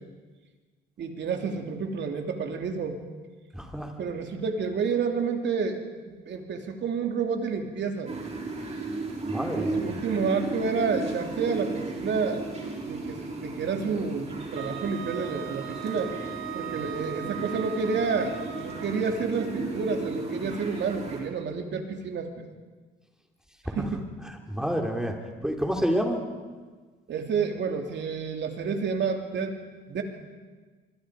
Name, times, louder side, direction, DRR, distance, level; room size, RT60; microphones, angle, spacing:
voice 1, 1.0-3.0 4.0-5.8 6.1-8.1 9.5-12.4 12.8-16.2 16.5-22.4 23.7-24.1 27.1-29.6 29.9-30.0, right 5 dB, 65° right, 4 dB, 3.1 m, -29 dB
voice 2, 3.5-3.9 9.3-10.0 24.5-25.2 25.4-26.2, equal, 5° right, 1 dB, 4.2 m, -28 dB
sound 1, 8.1-21.2, right 3 dB, 35° right, 5.3 m, -35 dB
Wind instrument woodwind instrument, 14.6-19.2, right 10 dB, 85° right, 1.7 m, -39 dB
25.5 x 23.0 x 5.2 m, 1.4 s
cardioid pair, 90°, 20 cm